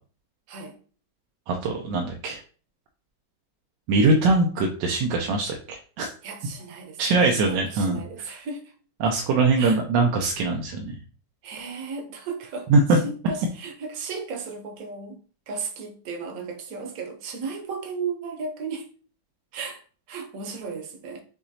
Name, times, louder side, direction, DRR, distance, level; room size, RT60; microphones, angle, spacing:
voice 1, 1.5-2.4 3.9-6.1 7.0-8.0 9.0-10.9 12.7-12.8, right 3 dB, 85° right, 1.3 m, -22 dB
voice 2, 6.2-8.7 9.6-9.8 11.4-18.9 19.5-19.8 20.1-21.2, right 4 dB, 60° right, 1.2 m, -35 dB
6.2 x 2.9 x 2.7 m
omnidirectional pair, 1.9 m